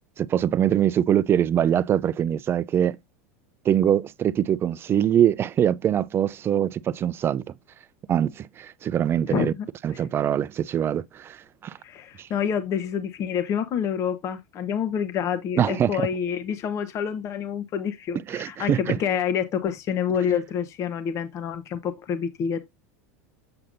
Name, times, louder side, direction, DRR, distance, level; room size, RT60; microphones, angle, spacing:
voice 1, 0.2-3.0 3.6-7.4 8.1-9.5 9.8-11.8 12.2-12.3 15.6-16.1 18.3-19.0, right 10 dB, 30° right, 0.4 m, -23 dB
voice 2, 9.3-9.7 9.9-10.0 11.8-22.6, left 8 dB, 40° left, 1.0 m, -27 dB
7.8 x 5.7 x 2.6 m
supercardioid pair, 115°, 8 cm